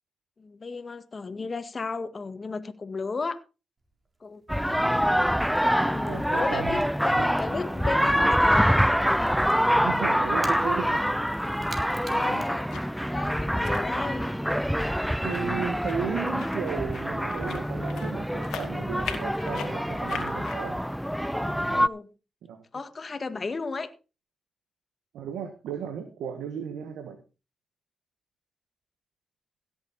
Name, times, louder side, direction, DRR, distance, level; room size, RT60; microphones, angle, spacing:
voice 1, 0.4-3.4 4.2-4.4 5.7-8.9 12.0-12.7 13.1-14.3 21.7-22.1 22.7-23.9, left 4 dB, 50° left, 1.8 m, -34 dB
Crackle / Crack, 3.8-13.3, right 2 dB, 35° right, 3.9 m, -51 dB
sound 1, 4.5-21.9, equal, ahead, 0.7 m, -25 dB
voice 2, 4.6-4.9 6.0-6.8 7.1-7.3 9.7-11.3 12.1-12.5 15.2-20.8 22.5-22.6 25.1-27.2, right 7 dB, 90° right, 1.5 m, -35 dB
sound 2, 11.3-20.6, left 8 dB, 90° left, 2.2 m, -43 dB
16.5 x 8.1 x 4.3 m
supercardioid pair, 45°, 0 cm